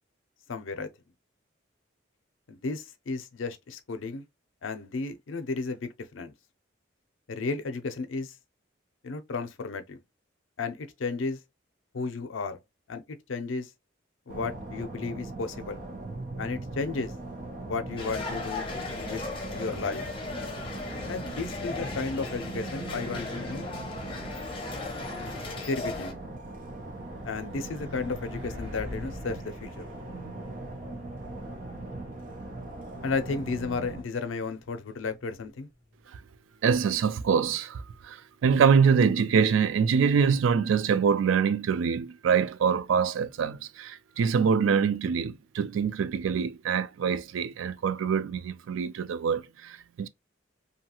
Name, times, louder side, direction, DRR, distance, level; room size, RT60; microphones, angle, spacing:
voice 1, 0.5-0.9 2.5-4.2 4.6-6.3 7.3-8.3 9.0-10.0 10.6-11.4 11.9-12.6 12.9-13.0 13.3-13.7 14.3-15.8 16.4-17.1 17.6-18.7 19.0-19.2 19.5-20.1 21.1-23.7 25.6-26.2 27.2-29.9 33.0-35.7, left 4 dB, 85° left, 0.5 m, -33 dB
sound 1, 14.3-34.0, right 2 dB, 45° right, 0.6 m, -40 dB
sound 2, 18.0-26.1, left 3 dB, 25° left, 0.7 m, -37 dB
Truck, 24.6-24.7 25.1-37.6, left 2 dB, 70° right, 1.6 m, -47 dB
voice 2, 36.6-50.1, right 6 dB, 85° right, 0.3 m, -25 dB
2.7 x 2.3 x 2.8 m
head